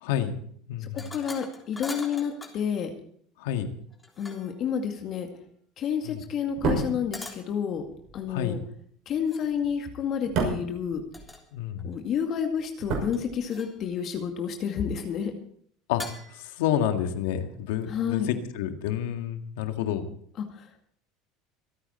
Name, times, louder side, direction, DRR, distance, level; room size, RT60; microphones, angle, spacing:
voice 1, 0.0-0.3 0.7-1.1 3.4-3.7 6.0-6.2 8.3-8.6 11.5-11.9 15.9-16.0 16.3-20.1, left 10 dB, 80° left, 6 dB, 1.9 m, -29 dB
voice 2, 0.8-2.9 4.2-5.3 5.8-7.8 8.1-8.6 9.1-11.0 11.8-15.3 17.9-18.4 20.4-20.5, left 7 dB, 45° left, 4 dB, 2.1 m, -30 dB
sound 1, 1.0-2.6 3.9-4.6 7.1-7.5 9.2-9.5 11.1-11.5 11.8-12.4 13.1-13.9 16.0-16.5, left 3 dB, 15° left, 3.5 m, -42 dB
sound 2, 6.4-11.8 12.0-13.9 14.1-14.3, right 4 dB, 60° right, 6.1 m, -33 dB
25.0 x 9.0 x 4.4 m, 0.62 s
supercardioid pair, 105°, 0 cm